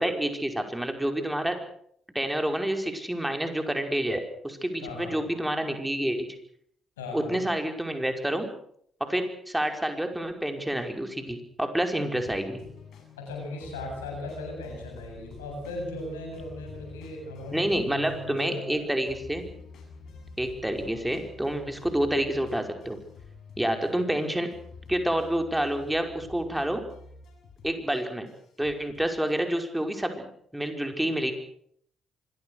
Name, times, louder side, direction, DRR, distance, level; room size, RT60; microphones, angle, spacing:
voice 1, 0.0-1.6 2.2-6.3 7.1-8.5 9.0-12.6 17.5-19.4 20.4-23.0 23.6-24.5 24.9-26.8 27.6-28.3 28.6-31.3, right 1 dB, 10° right, 5 dB, 5.3 m, -28 dB
voice 2, 4.8-5.1 7.0-7.4 13.2-18.9 20.8-21.2 23.9-24.1, left 2 dB, 85° left, 2 dB, 7.8 m, -38 dB
sound 1, 12.1-29.7, left 4 dB, 60° left, 7.5 m, -48 dB
25.5 x 21.5 x 6.6 m, 0.66 s
hypercardioid pair, 45°, 0 cm